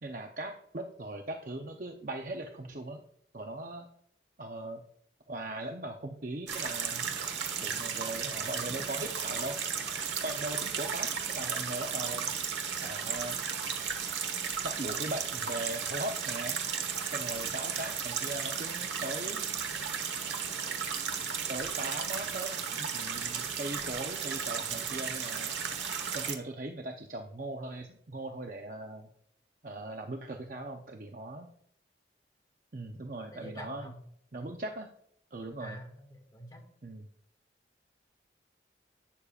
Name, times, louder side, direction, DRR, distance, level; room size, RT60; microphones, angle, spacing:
voice 1, 0.0-3.0 3.3-3.9 4.4-4.8 5.3-7.2 7.6-9.6 10.2-12.3 12.8-13.4 14.6-16.6 17.1-19.4 21.5-25.5 26.1-29.1 29.6-31.5 32.7-33.9 34.3-34.9 35.3-35.8 36.8-37.1, right 2 dB, 45° right, 3 dB, 0.7 m, -39 dB
sound 1, 6.5-26.4, right 7 dB, 80° right, 1.3 m, -34 dB
voice 2, 33.3-34.0 35.6-36.6, equal, 20° left, 1 dB, 1.9 m, -46 dB
11.5 x 8.5 x 2.4 m, 0.68 s
head